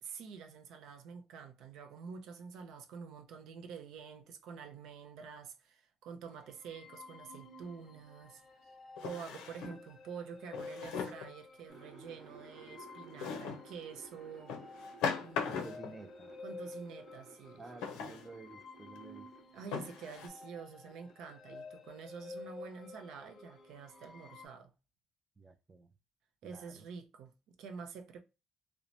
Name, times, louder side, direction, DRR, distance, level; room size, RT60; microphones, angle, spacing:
voice 1, 0.0-8.4 9.0-14.8 15.2-15.7 16.4-17.9 19.5-24.7 26.4-28.2, right 6 dB, 75° right, 0.5 m, -48 dB
sound 1, 6.2-24.4, left 3 dB, 45° left, 0.5 m, -52 dB
Drawer open or close, 7.6-7.7 9.0-9.8 10.5-11.3 13.2-13.7 14.5-15.9 17.8-18.3 19.0-19.1 19.7-20.3, left 6 dB, 90° left, 0.5 m, -39 dB
sound 2, 11.7-20.6 20.9-21.6, right 4 dB, 50° right, 1.0 m, -57 dB
voice 2, 15.5-16.3 17.6-19.3 25.4-25.9 26.4-26.8, right 3 dB, 20° right, 0.4 m, -52 dB
3.0 x 2.1 x 2.5 m
cardioid pair, 110°, 0 cm